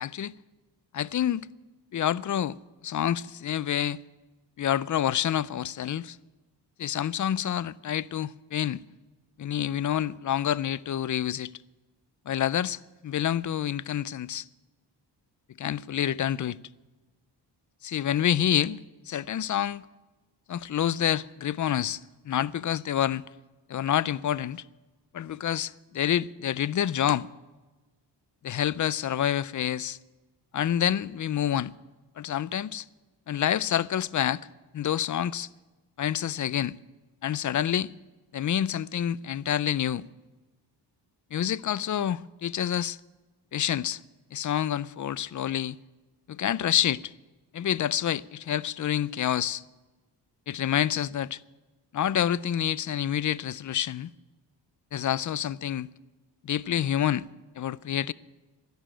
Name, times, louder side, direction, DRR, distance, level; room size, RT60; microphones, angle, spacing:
voice 1, 0.0-0.3 0.9-1.4 1.9-2.5 2.8-4.0 4.6-6.2 6.8-8.8 9.4-11.5 12.3-14.5 15.6-16.6 17.8-19.8 20.5-23.2 23.7-24.6 25.1-27.3 28.4-30.0 30.5-31.7 32.2-32.8 33.3-34.4 34.7-35.5 36.0-36.8 37.2-37.9 38.3-40.0 41.3-43.0 43.5-44.0 44.3-45.8 46.3-47.1 47.5-49.6 50.5-51.4 51.9-54.1 54.9-55.9 56.4-57.3 57.6-58.1, left 10 dB, 45° left, 0.4 m, -28 dB
12.5 x 11.0 x 8.9 m
wide cardioid pair, 120°, 43 cm